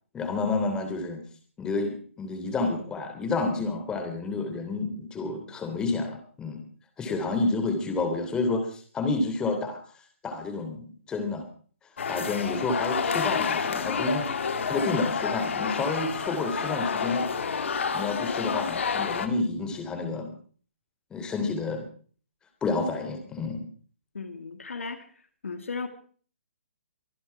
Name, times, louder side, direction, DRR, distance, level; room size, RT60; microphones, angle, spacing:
voice 1, 0.1-1.2 1.6-6.6 7.0-9.8 10.2-11.5 12.1-14.2 14.7-17.2 17.9-20.3 21.1-21.9 22.6-23.7, left 3 dB, 10° left, 3.1 m, -29 dB
sound 1, 12.0-19.3, left 6 dB, 70° left, 2.1 m, -29 dB
voice 2, 24.1-25.1 25.4-25.9, left 4 dB, 85° left, 2.3 m, -36 dB
24.0 x 10.5 x 4.7 m
hypercardioid pair, 150°, 7 cm